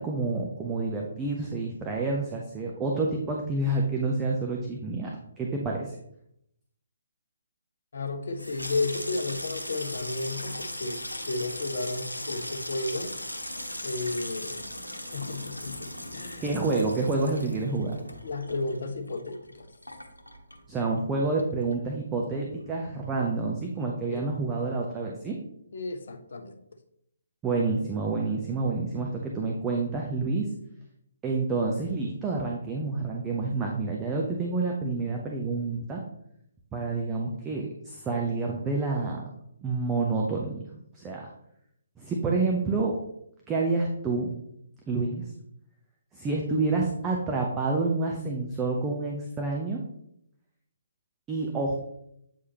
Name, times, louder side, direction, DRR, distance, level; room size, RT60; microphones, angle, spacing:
voice 1, 0.0-5.1 5.4-5.9 16.4-18.0 20.7-25.4 27.4-30.5 31.2-36.0 36.7-39.2 39.6-40.6 40.9-41.3 42.0-42.9 43.5-44.3 44.9-45.3 46.1-49.8 51.3-51.8, right 3 dB, 15° right, -1 dB, 0.7 m, -28 dB
voice 2, 7.9-13.1 13.8-14.6 14.9-16.5 18.2-19.7 24.1-24.2 25.7-26.6, left 2 dB, 50° left, 5 dB, 0.9 m, -33 dB
Water tap faucet / Sink (filling or washing), 8.2-21.1 21.4-22.0 22.3-22.6, left 1 dB, 85° left, 1.0 m, -38 dB
8.2 x 4.8 x 2.9 m, 0.76 s
figure-of-eight pair, 135°, 0 cm